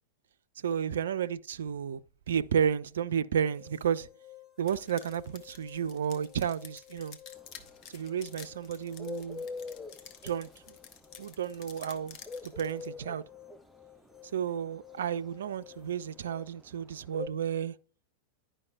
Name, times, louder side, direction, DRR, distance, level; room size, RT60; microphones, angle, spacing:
voice 1, 0.6-2.0 2.3-4.1 4.6-7.2 7.9-9.5 10.2-10.5 11.2-12.2 12.4-13.2 14.3-17.7, right 8 dB, 65° right, 0.3 m, -32 dB
sound 1, 3.4-16.5, left 14 dB, 15° left, 1.8 m, -56 dB
sound 2, 4.7-12.9, left 7 dB, 40° left, 0.9 m, -51 dB
Bird, 7.4-17.3, left 3 dB, ahead, 0.5 m, -42 dB
11.0 x 5.1 x 2.3 m
figure-of-eight pair, 90°, 0 cm